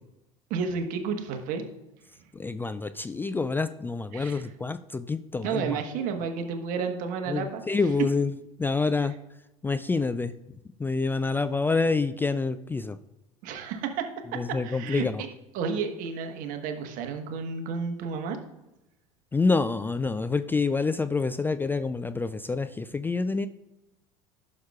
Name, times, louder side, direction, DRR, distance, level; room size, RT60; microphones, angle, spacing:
voice 1, 0.5-1.6 4.1-4.5 5.4-7.9 13.4-15.3 15.5-18.4, right 5 dB, 55° right, 6 dB, 1.2 m, -32 dB
voice 2, 2.4-5.8 7.3-8.3 8.6-9.2 9.6-10.3 10.8-13.0 14.3-15.2 19.3-23.5, left 4 dB, 10° left, 11 dB, 0.3 m, -27 dB
11.5 x 6.4 x 2.4 m, 0.93 s
hypercardioid pair, 80°, 16 cm